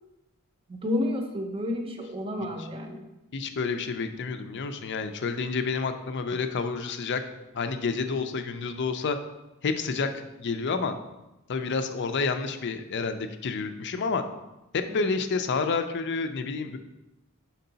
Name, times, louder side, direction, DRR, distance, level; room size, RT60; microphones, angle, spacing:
voice 1, 0.7-3.0 14.9-15.1, left 1 dB, 25° right, 4 dB, 0.7 m, -31 dB
voice 2, 3.3-7.2 7.5-9.2 9.6-10.1 10.4-11.0 11.5-14.2 14.7-16.8, left 4 dB, 55° left, 8 dB, 0.5 m, -29 dB
5.6 x 4.6 x 3.9 m, 0.99 s
head